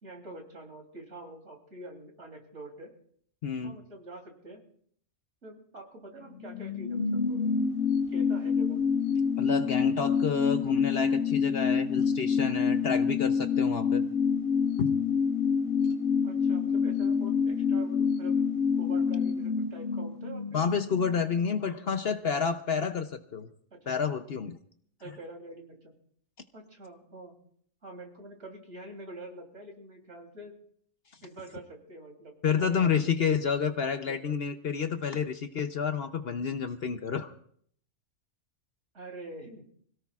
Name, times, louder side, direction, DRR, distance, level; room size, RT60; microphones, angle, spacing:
voice 1, 0.0-2.9 3.6-4.6 5.4-7.5 8.1-8.8 16.2-18.3 18.7-20.4 23.7-23.9 25.0-26.0 26.5-27.4 27.8-30.5 31.2-33.3 34.1-34.2 38.9-39.6, right 2 dB, 60° right, 2 dB, 3.5 m, -46 dB
voice 2, 3.4-3.8 9.4-14.0 14.8-15.0 20.5-23.5 23.9-24.6 32.4-37.3, left 6 dB, 55° left, 8 dB, 0.9 m, -29 dB
sound 1, 6.2-21.5 21.8-21.9, left 6 dB, 70° left, 2.2 m, -27 dB
25.5 x 17.0 x 2.4 m, 0.62 s
omnidirectional pair, 1.4 m